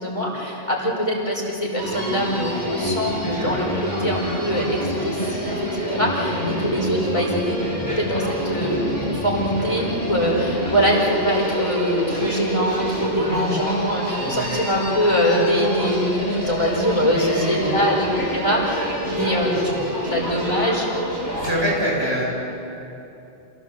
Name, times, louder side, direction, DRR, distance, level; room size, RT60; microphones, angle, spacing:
voice 1, 0.0-7.6 7.9-19.7 20.1-20.9, equal, 30° left, -3 dB, 4.9 m, -23 dB
Human voice, 1.8-21.6, equal, 55° right, 6.3 m, -27 dB
voice 2, 13.1-13.5 14.2-14.5 17.0-17.7 19.1-19.7 21.3-22.2, equal, 90° right, -5 dB, 8.4 m, -27 dB
28.0 x 17.0 x 7.7 m, 2.9 s
omnidirectional pair, 1.0 m